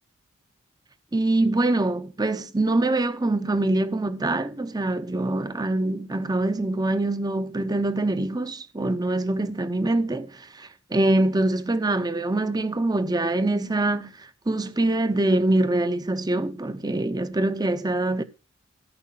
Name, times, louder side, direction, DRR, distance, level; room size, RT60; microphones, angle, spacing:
voice 1, 1.1-18.2, right 2 dB, 20° right, 0.7 m, -24 dB
14.0 x 5.4 x 5.7 m
head